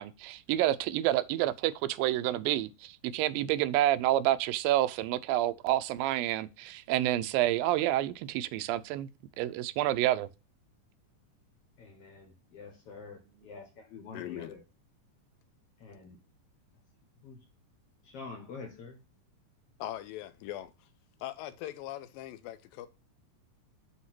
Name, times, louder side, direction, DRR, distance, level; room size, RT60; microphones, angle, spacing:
voice 1, 0.0-9.1 9.4-10.3, right 14 dB, 85° right, 2.3 m, -28 dB
voice 2, 11.8-14.6 15.8-16.2 17.2-17.4 18.0-19.0, left 4 dB, 60° left, 1.7 m, -47 dB
voice 3, 14.1-14.5 19.8-20.9 21.2-22.9, left 13 dB, 90° left, 2.4 m, -41 dB
8.3 x 2.8 x 5.9 m
omnidirectional pair, 4.1 m